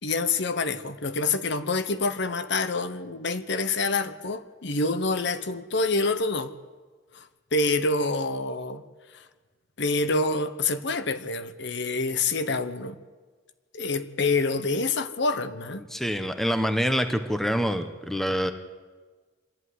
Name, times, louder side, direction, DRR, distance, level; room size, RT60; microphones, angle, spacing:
voice 1, 0.0-6.5 7.1-8.8 9.1-9.2 9.8-13.0 13.7-15.8, left 3 dB, 65° left, 1.1 m, -27 dB
voice 2, 15.9-18.5, equal, ahead, 1.1 m, -26 dB
25.5 x 11.5 x 9.5 m
head